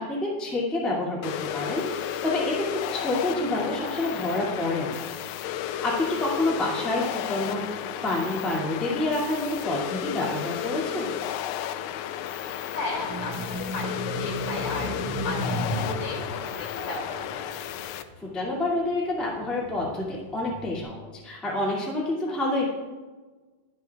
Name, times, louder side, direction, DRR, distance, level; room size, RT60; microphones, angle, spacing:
voice 1, 0.0-5.1 5.8-7.7 8.0-11.1 17.9-22.7, left 2 dB, ahead, -5 dB, 1.6 m, -28 dB
sound 1, 1.2-18.0, left 10 dB, 80° left, 1.8 m, -33 dB
voice 2, 12.6-14.9 15.2-17.4, left 2 dB, 60° left, 0 dB, 3.6 m, -35 dB
sound 2, 12.9-18.4 19.0-20.8, right 1 dB, 90° right, 3.1 m, -35 dB
21.0 x 7.7 x 2.4 m, 1.3 s
omnidirectional pair, 3.7 m